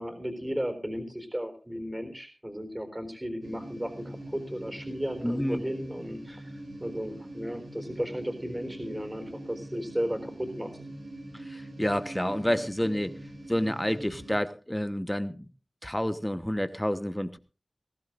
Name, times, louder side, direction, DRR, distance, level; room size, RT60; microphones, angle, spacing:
voice 1, 0.0-6.5 6.8-10.7, equal, 15° right, 6 dB, 3.9 m, -34 dB
sound 1, 3.4-14.4, right 1 dB, 85° right, 7.6 m, -43 dB
voice 2, 5.2-5.6 11.5-13.1 13.5-15.5 15.8-17.4, equal, 10° left, 11 dB, 1.1 m, -29 dB
20.5 x 15.5 x 2.5 m, 0.34 s
wide cardioid pair, 65°, 0 cm